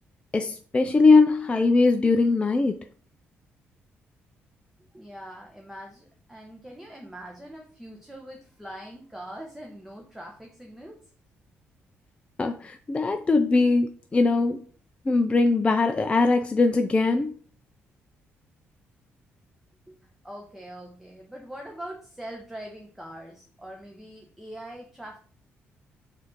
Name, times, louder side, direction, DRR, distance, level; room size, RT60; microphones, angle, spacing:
voice 1, 0.3-2.8 12.4-14.6 15.1-17.3, left 3 dB, 25° left, 6 dB, 0.4 m, -21 dB
voice 2, 4.9-11.0 19.9-25.2, right 1 dB, 5° right, 0 dB, 0.8 m, -42 dB
4.1 x 2.5 x 4.4 m, 0.43 s
cardioid pair, 80°, 5 cm